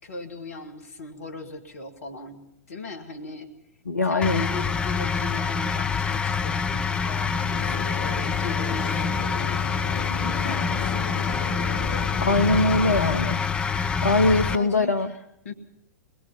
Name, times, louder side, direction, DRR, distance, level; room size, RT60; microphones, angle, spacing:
voice 1, 0.0-3.5 4.0-10.1 10.4-11.3 14.3-15.5, left 3 dB, 60° left, 5 dB, 2.4 m, -38 dB
voice 2, 3.9-4.5 12.2-13.4 14.0-15.1, left 2 dB, 80° left, 8 dB, 0.9 m, -22 dB
sound 1, 4.2-14.6, left 6 dB, 10° left, 0.8 m, -26 dB
sound 2, 7.5-13.2, left 5 dB, 40° left, 2.2 m, -35 dB
22.0 x 21.0 x 5.8 m, 0.80 s
figure-of-eight pair, 100°, 9 cm